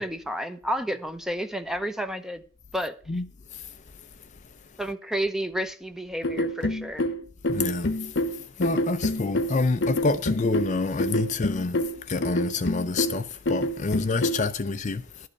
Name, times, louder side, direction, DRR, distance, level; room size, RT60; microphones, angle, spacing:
voice 1, 0.0-2.4 2.7-2.9 4.8-7.1, equal, ahead, 0.8 m, -31 dB
sound 1, 6.2-14.5, left 1 dB, 60° left, 1.0 m, -27 dB
voice 2, 7.5-7.9 8.6-11.8 12.1-15.0, left 3 dB, 40° left, 0.5 m, -27 dB
12.0 x 5.2 x 8.2 m
head